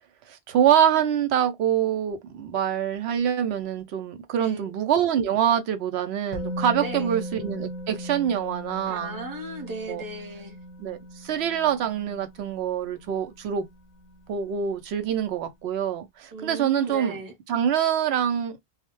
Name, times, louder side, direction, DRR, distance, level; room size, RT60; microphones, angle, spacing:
voice 1, 0.3-9.2 9.9-10.0 10.8-13.7 14.3-17.2 17.5-18.6, right 9 dB, 75° right, 0.8 m, -25 dB
voice 2, 4.4-4.7 6.8-7.2 8.9-10.6 16.3-17.3, right 1 dB, 20° right, 0.7 m, -36 dB
Musical instrument, 6.3-14.2 14.5-14.7, equal, 50° left, 0.6 m, -38 dB
2.2 x 2.0 x 2.9 m
omnidirectional pair, 1.1 m